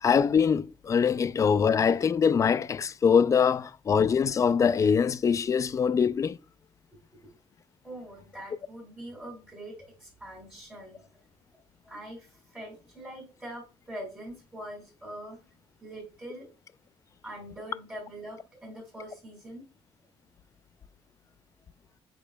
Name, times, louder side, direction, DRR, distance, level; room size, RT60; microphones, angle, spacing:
voice 1, 0.0-6.4, left 6 dB, 30° left, 0.3 m, -23 dB
voice 2, 7.8-11.0 11.5-11.6 11.8-15.4 15.8-16.5 17.2-19.6, right 1 dB, 10° right, 3.8 m, -43 dB
8.5 x 5.0 x 2.2 m
cardioid pair, 130°, 11 cm